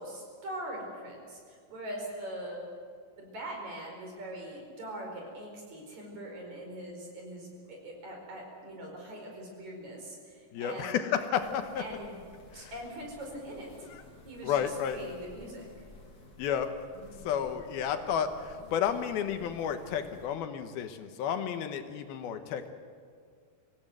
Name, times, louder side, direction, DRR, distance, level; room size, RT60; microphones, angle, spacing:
voice 1, 0.0-2.6 3.2-11.0 11.8-12.1 12.5-13.9 14.3-15.6, right 1 dB, 50° right, 0 dB, 5.9 m, -42 dB
voice 2, 10.5-11.8 12.6-12.7 13.9-14.0 14.4-15.0 16.4-16.7 17.2-22.7, left 8 dB, 85° left, 8 dB, 3.1 m, -31 dB
sound 1, 11.3-20.3, left 3 dB, 45° left, 4.1 m, -53 dB
25.5 x 16.5 x 8.0 m, 2.1 s
omnidirectional pair, 4.3 m